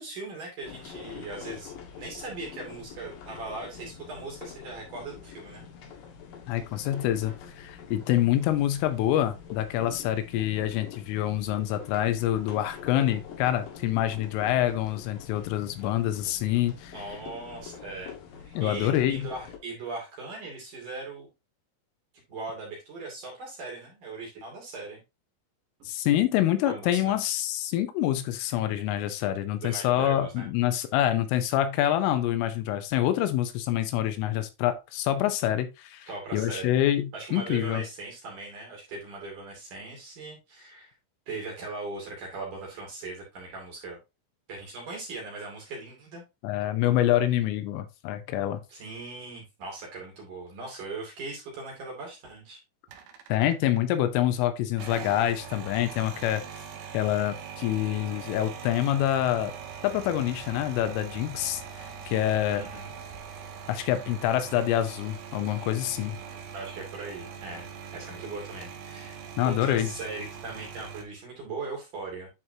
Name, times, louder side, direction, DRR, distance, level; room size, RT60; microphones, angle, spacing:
voice 1, 0.0-5.6 16.9-18.1 18.4-21.3 22.3-25.0 26.6-27.2 29.6-30.5 36.1-36.7 37.1-40.9 41.3-44.0 44.5-46.2 48.7-52.6 62.5-62.9 66.5-67.7 67.9-69.2 69.5-72.3, right 3 dB, 45° right, 3.5 m, -39 dB
sound 1, 0.6-19.6, left 7 dB, 65° left, 2.4 m, -45 dB
voice 2, 6.5-16.9 18.6-19.3 25.9-37.8 46.4-48.6 53.3-56.4 56.9-59.5 59.8-62.6 63.7-66.2 69.4-69.9, left 12 dB, 80° left, 3.3 m, -26 dB
sound 2, 52.9-54.0 54.7-71.0, right 7 dB, 90° right, 2.1 m, -42 dB
11.0 x 4.7 x 2.8 m
omnidirectional pair, 5.8 m